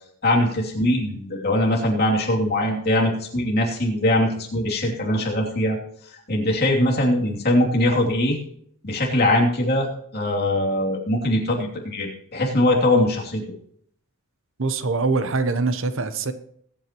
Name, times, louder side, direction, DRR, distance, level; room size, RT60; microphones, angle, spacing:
voice 1, 0.2-5.8 6.3-8.4 8.8-9.9 10.1-13.4, left 1 dB, 45° left, -1 dB, 2.8 m, -21 dB
voice 2, 14.6-16.3, right 3 dB, 60° right, 11 dB, 0.9 m, -23 dB
21.5 x 8.8 x 3.0 m, 0.67 s
head